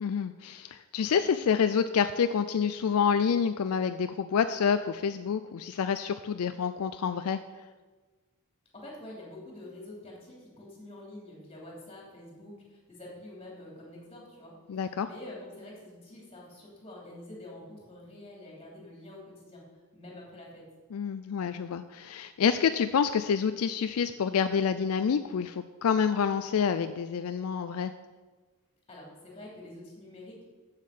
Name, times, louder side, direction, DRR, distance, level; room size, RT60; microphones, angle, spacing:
voice 1, 0.0-7.4 14.7-15.1 20.9-27.9, left 6 dB, 70° left, 10 dB, 0.4 m, -28 dB
voice 2, 8.7-19.6 19.9-20.7 28.9-30.5, left 1 dB, 25° left, -3 dB, 3.1 m, -47 dB
7.5 x 7.4 x 6.6 m, 1.3 s
head